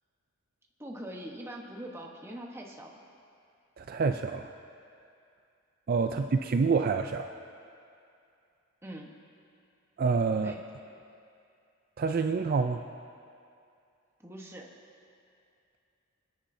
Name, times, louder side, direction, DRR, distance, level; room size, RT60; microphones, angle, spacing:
voice 1, 0.8-2.9 6.1-6.3 8.8-9.2 10.4-10.6 14.2-14.8, right 1 dB, 10° right, 0 dB, 1.1 m, -43 dB
voice 2, 3.8-4.5 5.9-7.3 10.0-10.6 12.0-12.8, right 4 dB, 45° right, 7 dB, 0.4 m, -27 dB
27.5 x 10.0 x 2.7 m, 2.5 s
head